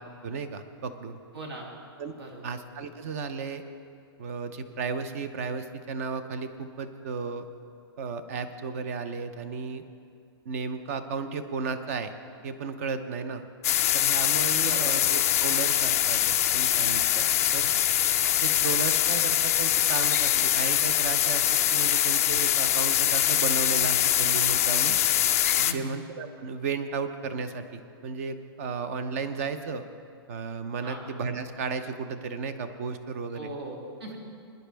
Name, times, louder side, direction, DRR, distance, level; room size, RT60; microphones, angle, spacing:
voice 1, 0.2-1.2 2.0-2.1 2.4-3.6 4.2-7.4 8.0-9.8 10.5-12.1 12.4-13.4 13.9-17.2 17.5-17.7 18.4-21.4 21.7-25.0 25.6-29.8 30.3-33.5, right 5 dB, 35° right, 10 dB, 0.7 m, -34 dB
voice 2, 1.3-1.7 2.1-2.5 14.6-15.0 25.6-26.0 30.8-31.0 33.3-34.2, right 2 dB, 75° right, -1 dB, 2.8 m, -39 dB
sound 1, 13.6-25.7, left 11 dB, 35° left, 0.3 m, -23 dB
20.5 x 10.5 x 3.4 m, 2.6 s
hypercardioid pair, 175°, 13 cm